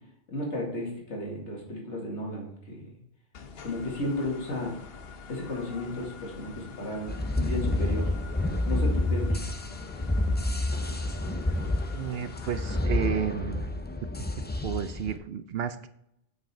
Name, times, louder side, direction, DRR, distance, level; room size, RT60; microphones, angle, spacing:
voice 1, 0.3-3.0 3.6-4.7 5.3-8.1 8.7-9.4, left 1 dB, 90° left, -2 dB, 2.5 m, -34 dB
sound 1, 3.3-12.9, left 5 dB, 60° left, 0.9 m, -45 dB
sound 2, 7.1-15.2, left 1 dB, 15° left, 0.3 m, -29 dB
voice 2, 11.9-13.7 14.6-15.9, right 8 dB, 65° right, 11 dB, 0.8 m, -32 dB
7.8 x 6.1 x 4.4 m, 0.77 s
omnidirectional pair, 1.2 m